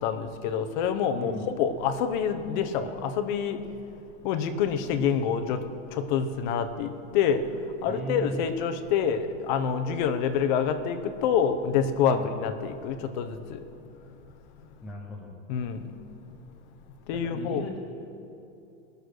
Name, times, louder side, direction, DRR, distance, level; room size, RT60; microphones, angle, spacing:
voice 1, 0.0-3.6 4.2-5.6 5.9-7.4 7.8-13.6 15.5-15.8 17.1-17.8, left 7 dB, 35° left, 8 dB, 0.8 m, -27 dB
voice 2, 7.9-8.4 12.1-12.4 14.8-15.3 17.1-17.8, equal, ahead, -6 dB, 0.3 m, -36 dB
20.0 x 6.6 x 6.4 m, 2.8 s
supercardioid pair, 165°, 38 cm